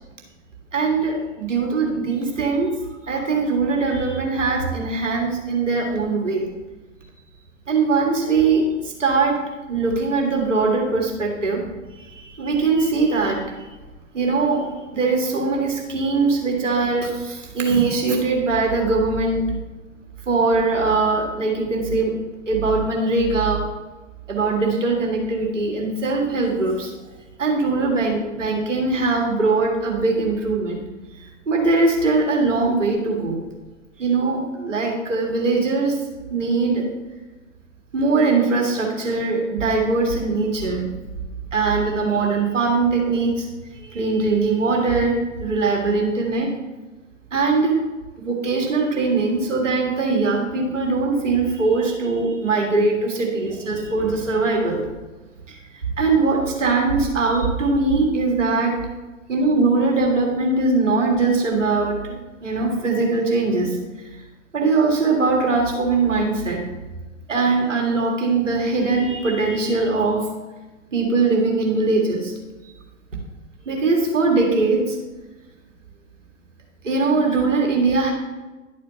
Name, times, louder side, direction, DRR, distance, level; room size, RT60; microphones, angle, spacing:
voice 1, 0.7-2.8 3.0-6.5 7.7-9.4 9.7-11.7 11.9-13.7 14.1-19.5 20.3-22.2 22.5-23.6 24.3-26.9 27.4-30.8 31.1-33.4 34.0-36.0 36.3-36.9 37.9-40.8 41.5-43.5 43.7-46.5 47.3-47.9 48.2-54.8 55.5-58.8 59.3-62.1 62.4-64.2 64.5-66.6 67.3-70.3 70.9-72.3 73.7-75.0 76.8-78.1, right 3 dB, 70° right, 0 dB, 1.8 m, -21 dB
11.0 x 8.4 x 2.8 m, 1.2 s
figure-of-eight pair, 105°, 38 cm